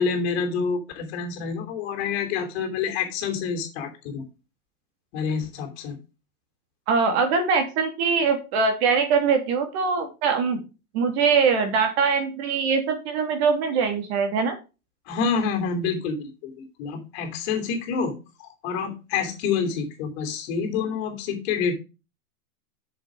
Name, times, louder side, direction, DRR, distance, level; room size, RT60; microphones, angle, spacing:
voice 1, 0.0-4.2 5.1-6.0 15.1-18.1 18.4-21.7, left 5 dB, 45° left, 5 dB, 3.0 m, -27 dB
voice 2, 6.9-10.6 10.9-14.5, right 5 dB, 45° right, 5 dB, 2.9 m, -22 dB
7.7 x 6.7 x 4.9 m, 0.30 s
supercardioid pair, 160°, 45 cm